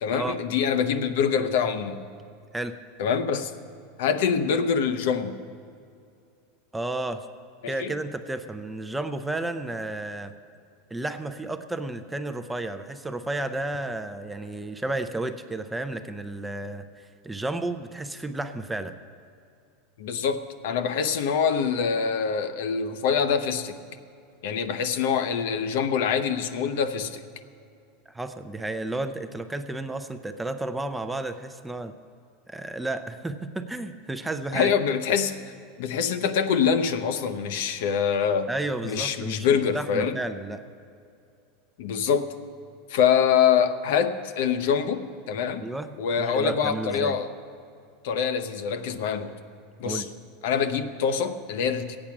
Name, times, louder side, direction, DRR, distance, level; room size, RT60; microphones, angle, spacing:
voice 1, 0.0-2.0 3.0-3.5 4.0-5.4 7.6-7.9 20.0-23.7 24.4-27.2 34.5-35.4 35.8-38.5 38.8-40.2 41.8-42.3 42.9-45.7 46.0-47.3 48.0-49.3 49.8-50.0 50.4-52.0, left 7 dB, 70° left, 10 dB, 0.7 m, -25 dB
voice 2, 6.7-7.3 7.7-10.3 10.9-19.0 28.1-31.9 32.5-34.7 38.5-40.6 45.6-45.9 46.2-47.1 49.8-50.0, right 2 dB, 5° right, 8 dB, 0.5 m, -32 dB
14.5 x 8.7 x 5.9 m, 2.5 s
supercardioid pair, 150°, 0 cm